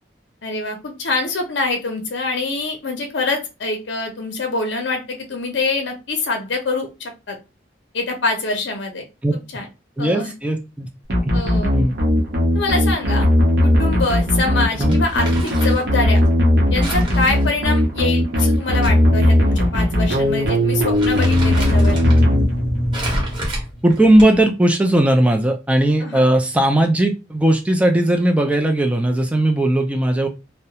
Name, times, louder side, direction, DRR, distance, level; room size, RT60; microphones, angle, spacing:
voice 1, 0.4-7.4 7.9-9.1 9.5-9.7 10.0-10.3 11.3-11.7 12.5-13.3 13.6-16.2 16.7-22.0 26.0-26.3, left 3 dB, 65° left, 3 dB, 0.6 m, -25 dB
voice 2, 10.0-10.9 11.2-11.4 11.7-11.9 14.8-15.0 23.8-30.3, right 1 dB, 5° right, 4 dB, 0.4 m, -17 dB
sound 1, 11.1-23.0, left 1 dB, 60° right, 0.7 m, -17 dB
Crumpling crinkling, 14.9-15.9 16.8-18.9 19.2-19.3 20.1-20.3 20.7-22.2 22.9-24.5, right 1 dB, 25° right, 0.9 m, -29 dB
sound 2, 18.9-24.1, equal, 35° left, 0.6 m, -28 dB
2.3 x 2.1 x 2.8 m, 0.27 s
head